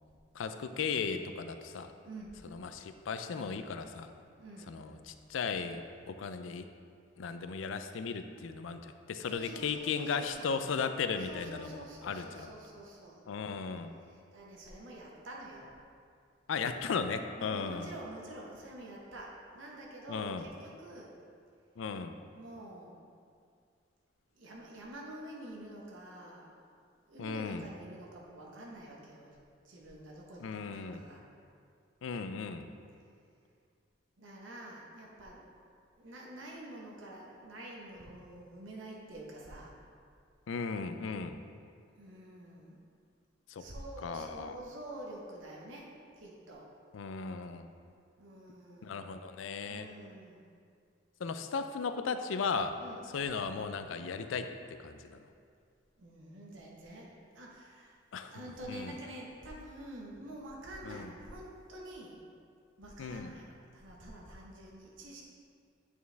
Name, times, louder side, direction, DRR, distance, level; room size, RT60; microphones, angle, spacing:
voice 1, 0.3-1.9 2.5-4.1 4.7-6.7 7.2-12.5 13.3-13.9 16.5-17.9 20.1-20.5 21.8-22.2 27.2-27.7 30.4-31.0 32.0-32.7 40.5-41.4 43.5-43.7 44.0-44.6 46.9-47.7 48.8-49.9 51.2-52.8 53.1-54.5 54.8-55.3 58.1-59.0 60.8-61.1 63.0-63.3, left 5 dB, 90° left, 9 dB, 0.4 m, -36 dB
voice 2, 4.4-4.8 9.3-10.6 11.2-13.3 14.1-15.7 17.3-21.1 22.3-23.0 24.3-26.6 27.1-29.4 29.6-31.2 34.2-35.4 36.0-39.7 41.9-42.8 43.6-46.7 48.2-49.0 49.6-50.5 52.8-53.0 56.0-58.0 58.3-62.2 62.8-65.2, right 1 dB, 90° right, -3 dB, 1.1 m, -48 dB
8.5 x 4.6 x 3.4 m, 2.3 s
head